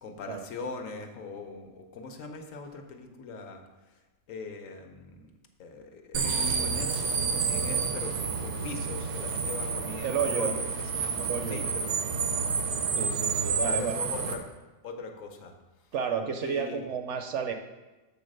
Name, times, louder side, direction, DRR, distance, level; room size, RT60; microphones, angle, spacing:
voice 1, 0.0-3.6 4.3-5.3 5.6-11.1 11.5-12.0 12.6-12.7 13.6-14.5 14.8-15.5 16.4-16.8, left 4 dB, 70° left, 4 dB, 1.2 m, -41 dB
sound 1, 6.1-14.3, right 5 dB, 85° right, 1.2 m, -29 dB
voice 2, 10.0-10.5 11.2-11.9 12.9-14.0 15.9-17.5, right 7 dB, 65° right, 6 dB, 0.8 m, -32 dB
7.4 x 4.0 x 6.4 m, 1.1 s
omnidirectional pair, 1.4 m